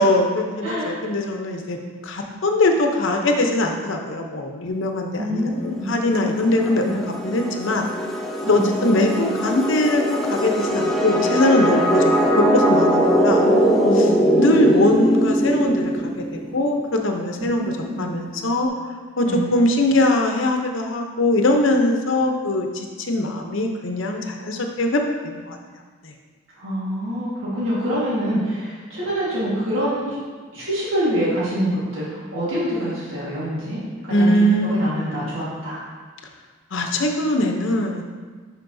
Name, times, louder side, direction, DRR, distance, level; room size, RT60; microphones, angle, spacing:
voice 1, 0.0-1.8 2.0-7.9 8.5-13.4 14.4-15.9 16.3-17.7 18.0-18.7 19.2-25.6 26.0-26.1 34.1-35.2 36.7-38.0, left 1 dB, 65° left, 3 dB, 0.8 m, -21 dB
voice 2, 0.6-1.0 5.2-5.9 6.5-6.9 8.4-8.7 13.4-14.8 17.5-18.0 19.3-19.5 26.6-30.2 30.5-35.8, equal, 75° right, -9 dB, 1.7 m, -26 dB
sound 1, 6.1-16.6, equal, ahead, 0.6 m, -21 dB
10.5 x 4.5 x 2.7 m, 1.5 s
head